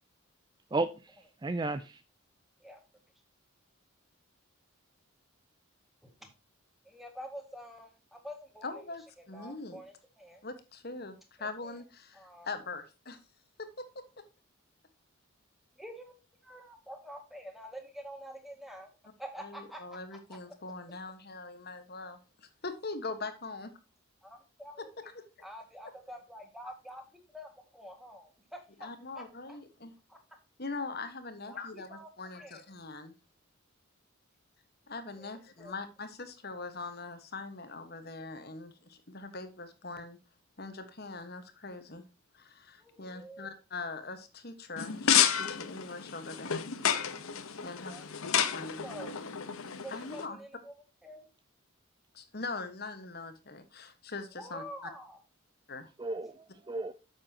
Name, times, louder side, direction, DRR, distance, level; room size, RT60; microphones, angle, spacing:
voice 1, 0.7-2.0 56.0-56.9, right 2 dB, 20° right, 0.4 m, -34 dB
voice 2, 6.8-8.7 9.2-10.4 11.4-11.8 12.1-12.5 15.8-18.9 19.2-20.0 24.2-25.1 25.4-27.0 27.3-28.9 29.1-29.6 30.1-30.2 31.5-32.6 35.2-35.7 42.8-43.5 47.7-48.0 48.4-49.2 49.8-50.7 51.0-51.3 54.4-55.2, equal, ahead, 1.9 m, -47 dB
voice 3, 8.6-9.8 10.4-13.2 13.6-14.2 19.4-23.7 24.8-25.2 25.8-25.9 28.8-29.9 30.6-33.1 34.9-40.2 40.6-42.0 42.3-46.7 47.6-48.0 48.5-48.9 49.9-50.4 52.1-54.9 55.7-55.9, left 3 dB, 45° left, 1.4 m, -42 dB
sound 1, 44.8-50.3, left 8 dB, 75° left, 1.0 m, -30 dB
9.8 x 7.3 x 2.8 m
head